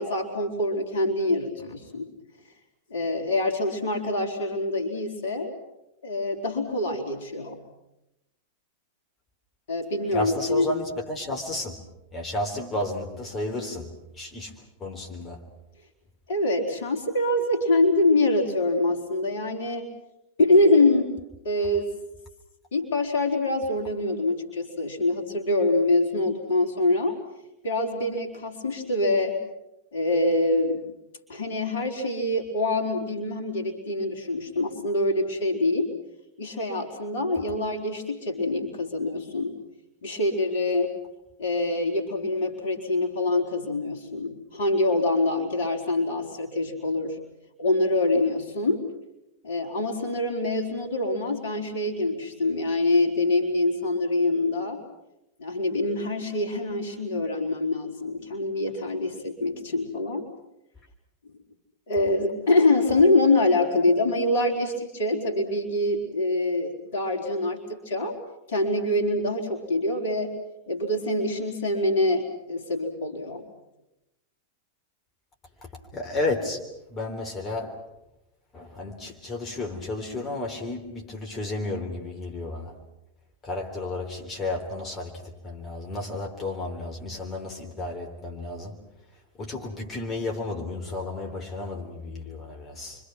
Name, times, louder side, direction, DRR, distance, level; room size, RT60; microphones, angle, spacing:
voice 1, 0.0-2.1 2.9-5.5 6.0-7.6 9.7-10.7 16.3-19.9 20.4-21.1 21.4-21.9 22.7-27.2 27.6-29.4 29.9-30.8 31.3-35.9 36.4-39.5 40.0-40.9 41.4-47.2 47.6-48.9 49.4-54.8 55.4-60.3 61.9-68.1 68.5-70.3 70.7-73.4, left 2 dB, 60° left, 4.1 m, -25 dB
voice 2, 10.1-11.8 12.1-15.5 75.9-77.8 78.5-82.8 83.4-88.8 89.4-93.0, left 2 dB, 25° left, 3.5 m, -32 dB
30.0 x 25.0 x 6.0 m
figure-of-eight pair, 90°, 0 cm